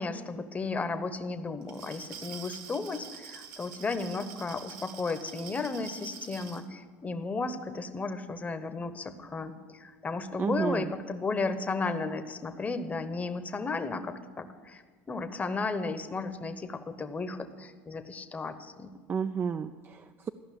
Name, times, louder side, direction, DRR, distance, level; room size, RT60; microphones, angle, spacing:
voice 1, 0.0-14.8 15.1-18.9, left 3 dB, 25° left, 9 dB, 0.9 m, -34 dB
Glass, 1.6-6.6, right 8 dB, 70° right, 1.1 m, -46 dB
voice 2, 10.4-10.9 19.1-20.3, right 6 dB, 30° right, 10 dB, 0.4 m, -31 dB
14.0 x 5.6 x 8.4 m, 1.6 s
supercardioid pair, 90°, 6 cm